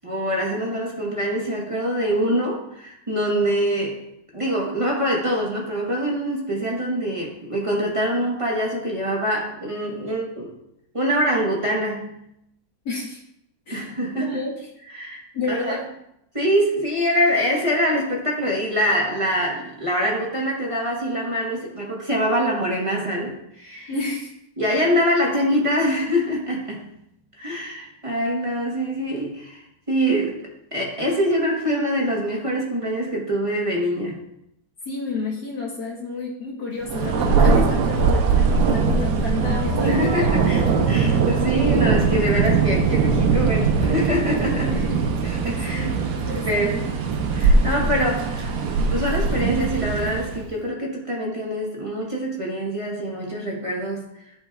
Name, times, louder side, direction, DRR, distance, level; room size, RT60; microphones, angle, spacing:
voice 1, 0.0-4.1 4.3-10.5 10.9-12.2 13.7-14.4 14.9-15.2 15.5-15.8 16.3-23.9 24.6-26.9 27.4-30.4 30.7-34.2 39.8-44.8 45.2-45.9 46.4-46.8 47.3-48.5 48.9-54.1, equal, 20° right, -3 dB, 1.0 m, -24 dB
voice 2, 12.9-13.2 13.7-14.7 15.3-15.8 23.9-24.3 34.9-40.5 44.7-45.0 45.7-46.9, left 3 dB, 65° left, -4 dB, 1.9 m, -31 dB
Thunder, 36.8-50.5, right 4 dB, 70° right, 1.3 m, -21 dB
sound 1, 38.8-48.4, left 1 dB, 10° left, 1.5 m, -35 dB
12.0 x 4.5 x 2.3 m, 0.79 s
omnidirectional pair, 2.0 m